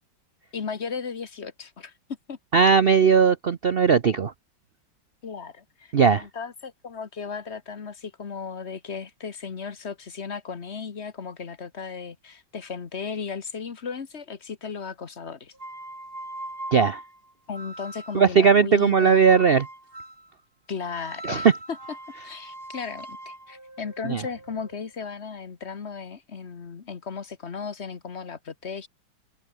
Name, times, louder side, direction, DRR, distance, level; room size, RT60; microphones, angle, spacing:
voice 1, 0.5-1.9 2.3-2.4 5.2-15.5 17.5-19.5 20.7-21.5 22.2-28.9, left 5 dB, 40° left, 1.4 m, -36 dB
voice 2, 2.5-4.3 5.9-6.3 16.7-17.0 18.1-19.7 21.3-21.5 24.1-24.2, right 6 dB, 70° right, 0.5 m, -18 dB
sound 1, 15.5-18.4 19.3-20.3 20.9-24.9, right 1 dB, 25° right, 5.4 m, -41 dB
open air
omnidirectional pair, 2.2 m